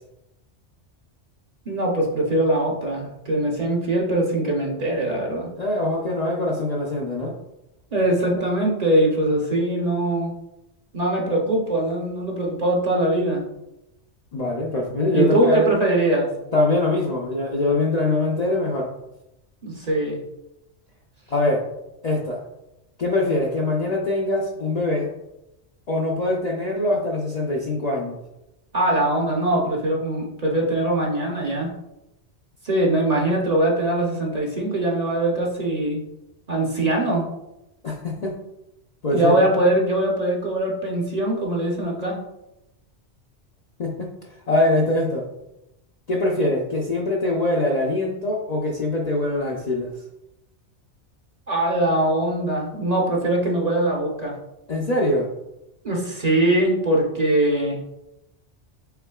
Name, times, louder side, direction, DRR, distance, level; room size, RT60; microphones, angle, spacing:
voice 1, 1.7-5.5 7.9-10.4 10.9-13.4 15.1-16.3 19.6-20.2 28.7-31.7 32.6-36.0 36.5-37.3 39.1-42.2 51.5-54.3 55.8-57.8, right 1 dB, 40° right, -1 dB, 0.8 m, -22 dB
voice 2, 5.6-7.3 14.3-15.7 16.5-18.9 21.3-21.6 22.0-22.4 23.0-25.1 25.9-28.2 37.8-38.3 39.0-39.5 43.8-44.1 44.5-45.2 46.1-49.9 54.7-55.3, left 2 dB, 45° left, -2 dB, 0.5 m, -23 dB
5.7 x 3.6 x 2.3 m, 0.90 s
omnidirectional pair, 1.2 m